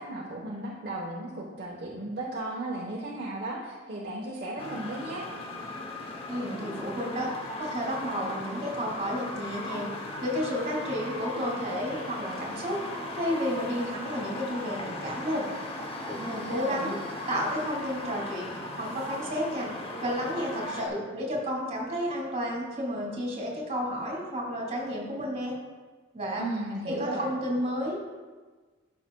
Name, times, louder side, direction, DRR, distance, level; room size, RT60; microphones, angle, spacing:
voice 1, 0.0-5.3 16.5-16.9 26.4-27.3, right 1 dB, 50° right, -5 dB, 1.0 m, -35 dB
sound 1, 4.6-20.9, left 1 dB, 30° left, 0.8 m, -38 dB
voice 2, 6.3-7.3 7.6-9.9 10.2-12.8 13.1-15.5 16.1-16.9 17.3-19.7 20.0-25.6 26.1-26.4 26.8-28.0, equal, 35° right, -1 dB, 2.0 m, -31 dB
13.0 x 5.7 x 2.2 m, 1.3 s
head